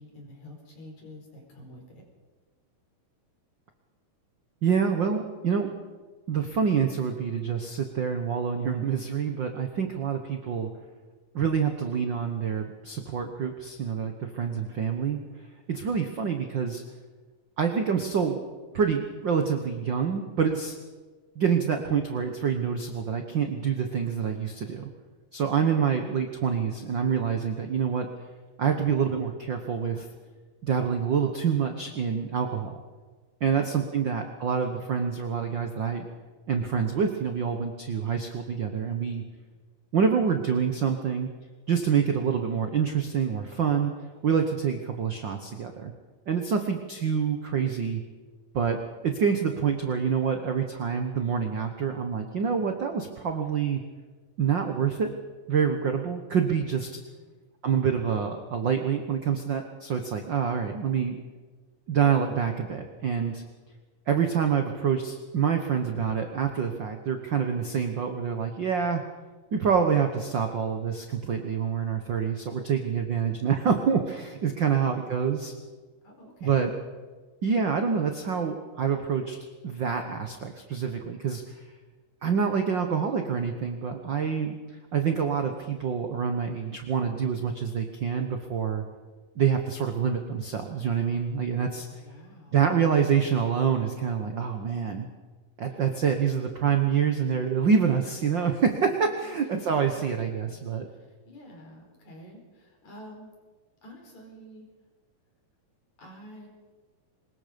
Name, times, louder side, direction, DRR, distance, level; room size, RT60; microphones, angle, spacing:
voice 1, 0.0-1.8 33.5-34.3 57.2-57.4 74.6-75.5 76.0-76.7 91.6-92.7 95.7-96.0 99.2-99.4 100.4-100.6 100.9-103.3 103.8-104.7 106.0-106.5, equal, 55° left, 1 dB, 5.8 m, -49 dB
voice 2, 4.6-5.7 6.3-10.7 11.3-15.2 15.7-16.8 17.6-18.4 18.7-20.7 21.3-24.9 25.3-28.1 28.6-30.1 30.6-32.7 33.4-36.1 36.5-39.2 39.9-41.3 41.7-43.9 44.2-45.9 46.3-48.0 48.5-53.8 54.4-55.1 55.5-57.0 57.6-61.2 61.9-63.4 64.1-69.0 69.5-75.5 76.4-76.7 77.4-79.4 79.6-81.4 82.2-84.5 84.9-88.8 89.3-91.9 92.5-95.1 95.6-100.9, right 7 dB, 75° right, 5 dB, 1.0 m, -26 dB
24.0 x 20.5 x 5.2 m, 1.4 s
omnidirectional pair, 4.0 m